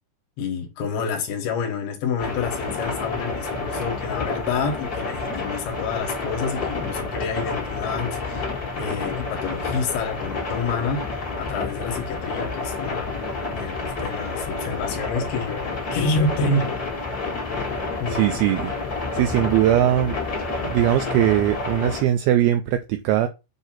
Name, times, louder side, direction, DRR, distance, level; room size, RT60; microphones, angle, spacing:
voice 1, 0.4-13.2 13.5-16.8 18.0-18.2, left 4 dB, 70° left, 2.8 m, -28 dB
sound 1, 2.2-22.0, left 3 dB, 35° left, 1.4 m, -29 dB
voice 2, 18.1-18.7 19.1-20.2 20.6-23.3, right 12 dB, 85° right, 2.2 m, -20 dB
7.9 x 2.8 x 5.8 m
omnidirectional pair, 4.9 m